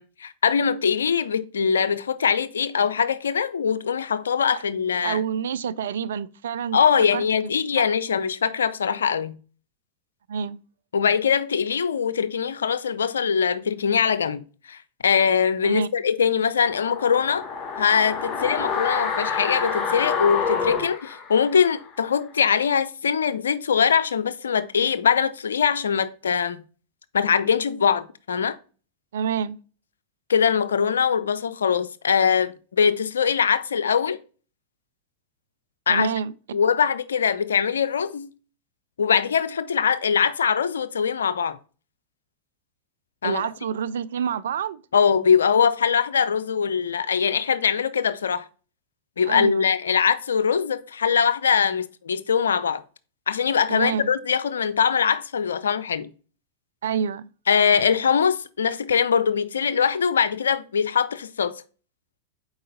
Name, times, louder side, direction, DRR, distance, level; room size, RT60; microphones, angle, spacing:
voice 1, 0.0-5.2 6.7-9.4 10.9-17.4 17.8-26.6 27.1-28.5 30.3-34.2 35.9-36.1 36.5-38.3 39.0-41.6 43.2-43.4 44.9-48.4 49.2-52.8 53.3-56.1 57.5-61.5, left 7 dB, 80° left, 0.4 m, -22 dB
voice 2, 5.0-6.8 7.1-7.2 7.8-7.9 10.3-10.6 15.6-15.9 29.1-29.6 35.9-36.3 43.2-44.8 49.3-49.7 53.7-54.1 56.8-57.3, right 7 dB, 75° right, 0.3 m, -27 dB
sound 1, 16.6-21.8 22.1-22.2, left 5 dB, 30° left, 1.2 m, -28 dB
4.6 x 3.9 x 5.2 m
hypercardioid pair, 95°, 0 cm